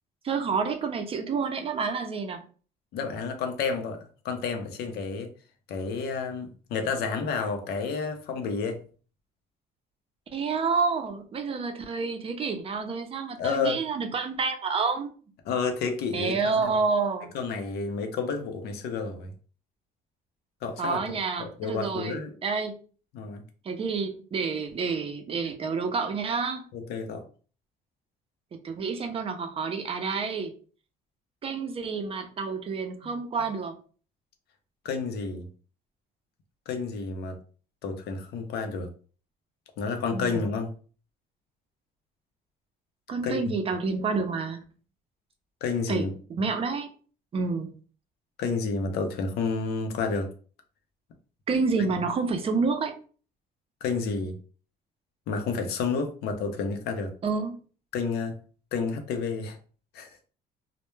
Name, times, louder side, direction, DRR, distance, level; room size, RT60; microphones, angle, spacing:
voice 1, 0.2-2.4 10.3-15.1 16.1-17.3 20.8-22.8 23.6-26.6 28.6-30.5 31.4-33.8 40.1-40.5 43.1-44.6 45.9-46.9 47.3-47.7 51.5-52.9 57.2-57.6, right 4 dB, 35° right, 0.5 m, -29 dB
voice 2, 2.9-5.3 5.7-8.8 13.4-13.8 15.4-16.7 17.3-19.3 20.6-21.0 21.4-22.3 23.1-23.4 26.7-27.2 34.8-35.5 36.7-37.4 37.8-38.9 39.8-40.7 43.2-43.4 45.6-46.1 48.4-50.3 53.8-54.4 55.3-57.1 57.9-58.4 58.7-59.6 59.9-60.1, left 4 dB, 75° left, 0.6 m, -30 dB
2.1 x 2.1 x 3.0 m
cardioid pair, 110°, 17 cm